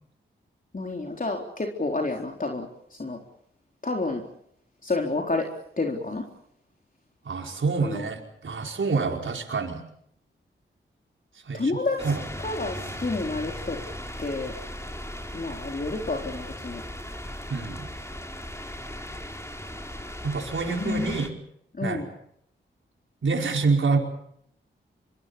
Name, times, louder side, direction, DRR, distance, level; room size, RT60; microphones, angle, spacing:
voice 1, 0.7-3.2 3.8-4.2 4.8-5.5 5.8-6.2 7.8-8.1 11.5-12.0 12.4-13.8 14.2-14.5 15.3-16.8 20.7-21.2 21.7-22.1, left 3 dB, 40° left, 1 dB, 4.1 m, -29 dB
voice 2, 7.2-9.8 11.3-11.8 12.0-12.3 12.7-12.9 17.5-17.9 20.2-21.4 21.8-22.1 23.2-24.0, right 4 dB, 65° right, 2 dB, 5.1 m, -27 dB
sound 1, 12.0-21.3, left 1 dB, 15° left, 4.2 m, -37 dB
25.0 x 24.0 x 7.0 m, 0.72 s
cardioid pair, 45°, 21 cm